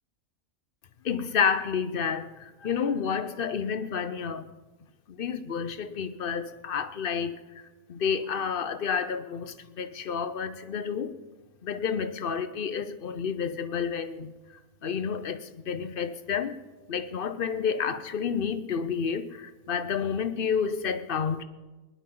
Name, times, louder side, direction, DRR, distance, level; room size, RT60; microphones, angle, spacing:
voice 1, 1.0-4.5 5.1-7.4 7.9-11.1 11.6-16.6 16.9-21.4, left 6 dB, 50° left, 0.8 m, -30 dB
21.5 x 10.5 x 3.8 m
omnidirectional pair, 1.5 m